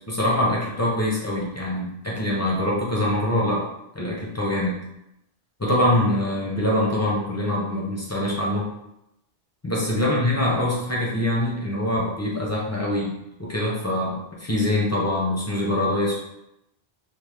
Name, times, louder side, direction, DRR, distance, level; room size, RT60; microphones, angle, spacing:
voice 1, 0.1-3.6 3.9-4.7 5.6-8.6 9.6-16.2, left 1 dB, 20° left, -4 dB, 0.4 m, -24 dB
3.1 x 2.0 x 3.3 m, 0.85 s
omnidirectional pair, 1.1 m